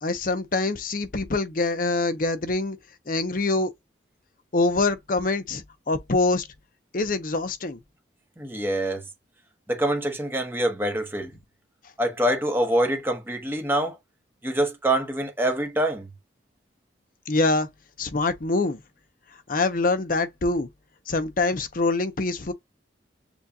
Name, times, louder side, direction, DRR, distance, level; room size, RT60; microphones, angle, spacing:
voice 1, 0.0-2.8 3.1-3.7 4.5-6.5 6.9-7.8 17.3-17.7 18.0-18.8 19.5-20.7 21.1-22.5, left 3 dB, 50° left, 0.7 m, -24 dB
voice 2, 8.4-9.0 9.7-11.3 12.0-14.0 14.4-16.1, right 1 dB, 10° right, 1.0 m, -25 dB
7.0 x 2.5 x 2.7 m
head